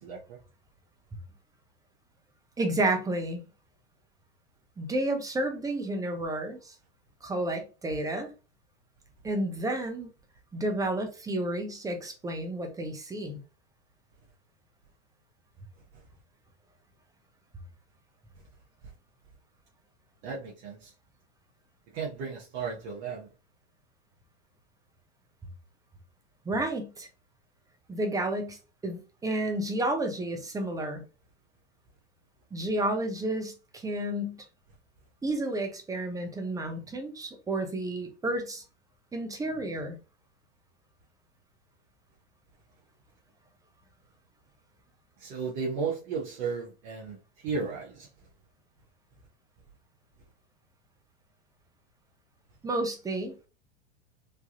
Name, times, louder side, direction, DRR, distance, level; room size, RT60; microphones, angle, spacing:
voice 1, 0.0-0.4 20.2-20.9 21.9-23.3 45.2-47.2 47.4-48.1, right 5 dB, 40° right, 0.9 m, -34 dB
voice 2, 2.6-3.4 4.8-6.7 7.2-8.3 9.2-10.1 10.5-13.4 26.5-27.1 27.9-28.6 28.8-31.0 32.5-34.4 35.2-38.6 39.1-40.0 52.6-53.3, right 1 dB, 10° right, 0.6 m, -31 dB
3.3 x 2.2 x 2.6 m
figure-of-eight pair, 90°, 34 cm